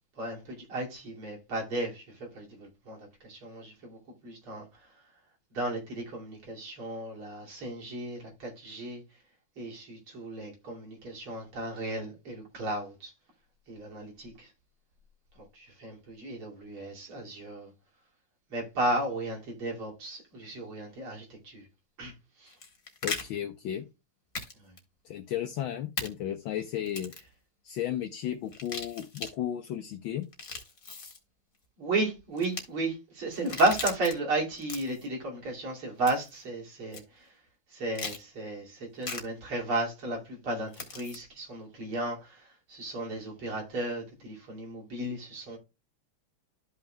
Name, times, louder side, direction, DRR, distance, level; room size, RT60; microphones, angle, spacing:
voice 1, 0.2-4.7 5.5-9.0 9.6-13.1 13.7-14.5 15.4-17.7 18.5-21.7 22.0-22.1 22.4-22.5 24.6-24.7 31.8-37.3 37.7-45.6, right 2 dB, 75° right, 3.5 m, -34 dB
sound 1, 22.5-23.2 24.3-24.5 24.8-24.9 26.0-26.1 26.9-27.3 28.5-29.3 30.2-31.2 32.4-32.6 33.3-34.1 34.6-35.1 36.1-36.4 36.9-37.0 37.9-38.2 39.0-39.2 40.7-41.2, left 4 dB, 40° left, 2.0 m, -38 dB
voice 2, 23.0-23.8 25.0-27.1 27.6-30.3, left 11 dB, 70° left, 1.5 m, -34 dB
12.5 x 5.8 x 2.3 m
omnidirectional pair, 2.4 m